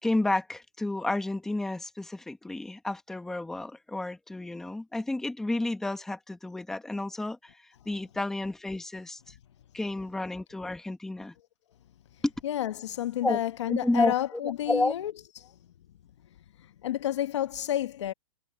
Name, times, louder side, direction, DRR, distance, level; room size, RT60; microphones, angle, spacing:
voice 1, 0.0-7.4 7.8-9.3 9.7-11.3 12.2-12.3 13.2-13.4 13.7-14.9, left 2 dB, ahead, 1.4 m, -31 dB
voice 2, 12.4-15.1 15.4-15.5 16.8-18.1, left 12 dB, 50° left, 1.2 m, -30 dB
hypercardioid pair, 175°, 19 cm